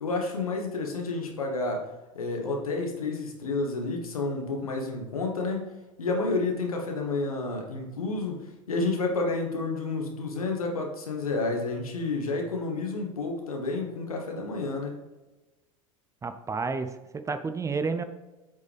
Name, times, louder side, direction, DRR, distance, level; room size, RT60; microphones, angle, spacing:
voice 1, 0.0-5.7 6.0-15.0, left 3 dB, 85° left, 1 dB, 1.5 m, -30 dB
voice 2, 16.2-18.0, right 4 dB, 15° right, 10 dB, 0.5 m, -31 dB
8.0 x 5.1 x 3.5 m, 1.1 s
hypercardioid pair, 85°, 18 cm